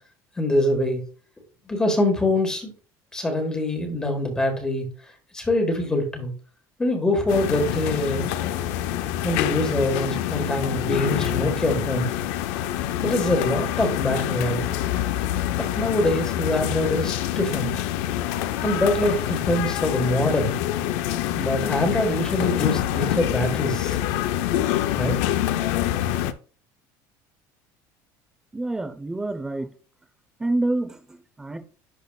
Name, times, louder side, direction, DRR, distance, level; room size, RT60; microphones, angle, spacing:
voice 1, 0.4-1.0 1.7-2.7 3.1-4.9 5.3-6.3 6.8-8.3 9.2-12.1 13.0-14.9 15.6-17.7 18.6-20.6 21.3-24.0 24.9-25.2, left 1 dB, 10° left, 1.5 m, -24 dB
sound 1, 7.3-26.3, left 12 dB, 85° left, 0.6 m, -26 dB
voice 2, 28.5-29.7 30.4-31.6, right 2 dB, 10° right, 0.7 m, -27 dB
10.5 x 4.1 x 2.3 m
cardioid pair, 170°, 8 cm